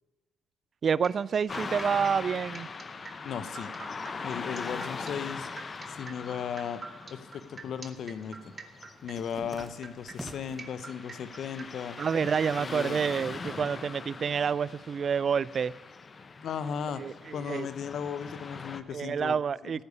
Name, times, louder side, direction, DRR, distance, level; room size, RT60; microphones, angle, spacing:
voice 1, 0.8-2.7 12.0-15.7 17.0-17.7 18.9-19.8, right 6 dB, 50° right, 0.3 m, -28 dB
sound 1, 1.0-11.6, right 4 dB, 35° right, 1.5 m, -46 dB
Car passing by / Traffic noise roadway noise, 1.5-18.8, left 4 dB, 40° left, 0.8 m, -41 dB
voice 2, 3.2-3.7 4.2-5.5 5.9-6.8 7.1-8.5 9.0-12.0 12.6-13.0 16.4-17.0 17.3-19.7, left 7 dB, 65° left, 0.9 m, -36 dB
sound 2, 7.5-7.6 7.9-10.7 11.2-11.8 12.1-13.8, equal, 5° right, 1.2 m, -48 dB
14.0 x 6.7 x 9.7 m
cardioid pair, 80°, 0 cm